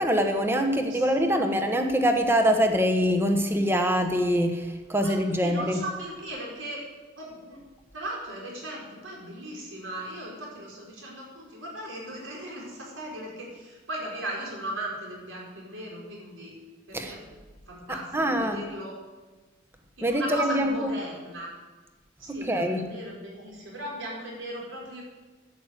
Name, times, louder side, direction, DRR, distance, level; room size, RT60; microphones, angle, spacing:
voice 1, 0.0-4.6 4.9-5.8 16.9-17.1 18.1-18.6 20.0-20.9 22.3-22.8, equal, 10° right, 5 dB, 1.2 m, -24 dB
voice 2, 0.9-1.9 5.0-6.8 7.2-7.6 7.9-16.5 16.9-17.3 17.7-19.0 20.0-21.5 22.2-25.0, right 1 dB, 80° right, -3 dB, 4.7 m, -37 dB
11.0 x 9.5 x 8.1 m, 1.2 s
head